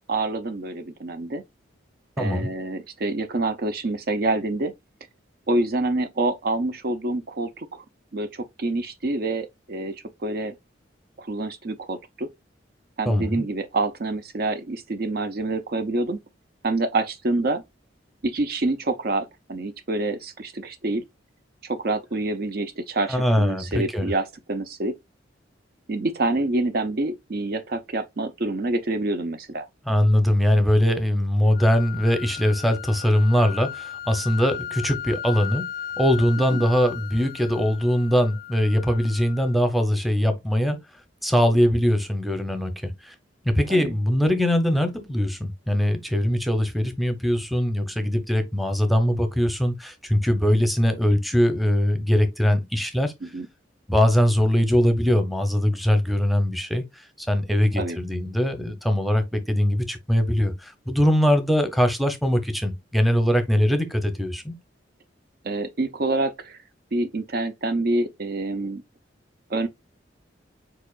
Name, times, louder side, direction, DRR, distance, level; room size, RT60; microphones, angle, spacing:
voice 1, 0.1-1.4 2.2-4.7 5.5-7.8 8.1-10.5 11.2-12.3 13.0-16.2 16.6-17.6 18.2-21.0 21.6-24.9 25.9-29.7 36.5-36.6 43.7-43.9 53.2-53.5 57.8-58.0 65.4-66.6 66.9-68.8 69.5-69.7, right 2 dB, 55° right, 0.6 m, -27 dB
voice 2, 2.2-2.5 13.1-13.4 23.1-24.1 29.9-35.7 36.0-40.8 41.2-43.1 43.4-53.1 53.9-56.8 57.2-64.5, equal, ahead, 0.8 m, -21 dB
sound 1, 31.5-39.6, left 10 dB, 50° left, 0.3 m, -36 dB
4.8 x 4.5 x 2.4 m
head